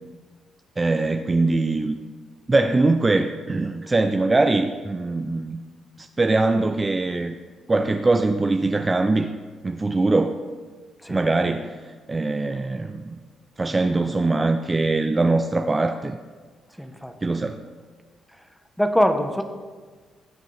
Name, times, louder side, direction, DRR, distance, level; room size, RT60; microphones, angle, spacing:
voice 1, 0.8-2.0 2.5-5.6 6.0-7.3 7.7-9.3 9.6-10.4 11.1-13.2 13.6-16.2 17.2-17.7, right 2 dB, 25° right, 7 dB, 0.4 m, -22 dB
voice 2, 16.8-17.1 18.8-19.4, equal, 5° left, 7 dB, 1.0 m, -22 dB
17.0 x 6.6 x 3.3 m, 1.5 s
cardioid pair, 90°, 0 cm